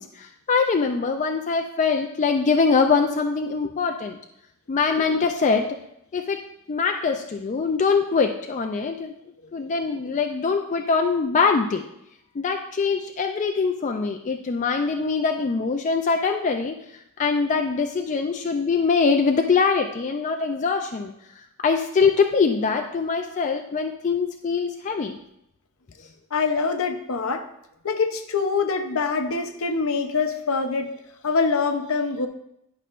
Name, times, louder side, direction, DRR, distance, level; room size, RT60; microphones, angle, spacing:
voice 1, 0.0-4.2 4.7-5.7 6.1-9.1 9.5-11.8 12.4-16.7 17.2-21.1 21.6-25.2, left 5 dB, 35° left, 4 dB, 0.3 m, -23 dB
voice 2, 26.3-27.5 27.8-30.9 31.2-32.3, left 4 dB, 65° left, 7 dB, 0.7 m, -24 dB
10.5 x 5.5 x 2.5 m, 0.80 s
head